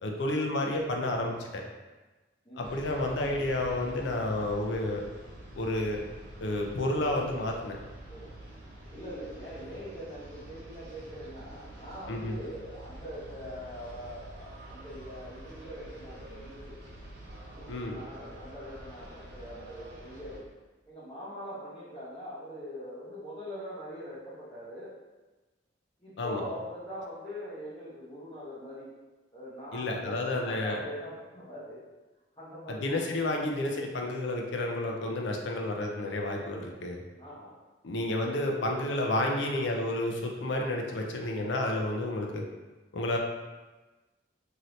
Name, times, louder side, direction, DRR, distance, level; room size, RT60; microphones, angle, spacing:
voice 1, 0.0-1.6 2.6-5.1 5.6-6.0 6.4-7.8 12.1-12.4 17.7-17.9 26.2-26.4 29.7-30.8 32.7-37.0 37.8-42.4 42.9-43.2, left 1 dB, 65° left, 1 dB, 0.4 m, -30 dB
sound 1, 2.6-20.4, right 1 dB, 55° right, 1.1 m, -47 dB
voice 2, 8.9-16.8 17.5-20.5 20.9-24.9 26.0-28.9 29.3-31.8 32.4-32.9 37.2-37.5, equal, 25° left, -13 dB, 0.9 m, -42 dB
2.8 x 2.6 x 3.1 m, 1.2 s
head